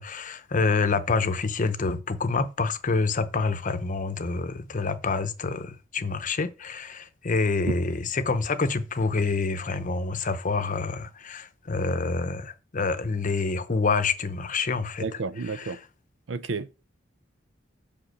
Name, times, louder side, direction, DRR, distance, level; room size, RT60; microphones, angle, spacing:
voice 1, 0.0-15.0 15.5-15.8, left 4 dB, 45° left, 0.8 m, -27 dB
voice 2, 15.0-15.8 16.3-16.7, right 4 dB, 85° right, 0.6 m, -31 dB
6.9 x 5.2 x 6.4 m
head